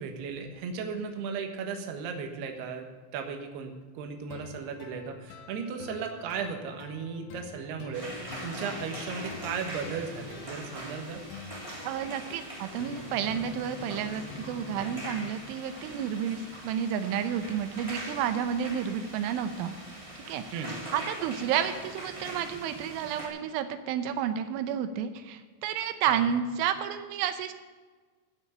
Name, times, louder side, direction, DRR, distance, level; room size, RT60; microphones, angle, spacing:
voice 1, 0.0-2.9 3.1-11.2 20.5-20.8 26.1-26.2, right 5 dB, 70° right, 4 dB, 3.1 m, -36 dB
sound 1, 4.3-15.3, left 6 dB, 85° left, 2.6 m, -47 dB
sound 2, 7.9-23.3, right 1 dB, 10° right, 1.5 m, -42 dB
voice 2, 11.8-19.7 20.3-20.6 20.9-27.5, right 8 dB, 90° right, 8 dB, 3.2 m, -31 dB
15.0 x 6.2 x 8.8 m, 1.4 s
omnidirectional pair, 5.4 m